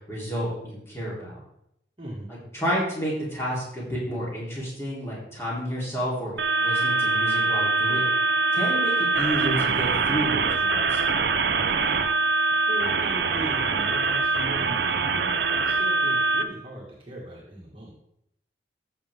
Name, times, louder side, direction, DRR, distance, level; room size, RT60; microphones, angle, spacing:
voice 1, 0.1-1.4 2.5-8.0 8.5-11.0, equal, 15° left, -6 dB, 3.6 m, -30 dB
voice 2, 2.0-2.3 11.7-12.1 12.7-17.9, right 1 dB, 30° right, -4 dB, 2.0 m, -38 dB
sound 1, 6.4-16.4, right 3 dB, 65° right, 0.8 m, -23 dB
14.0 x 6.9 x 3.7 m, 0.77 s
head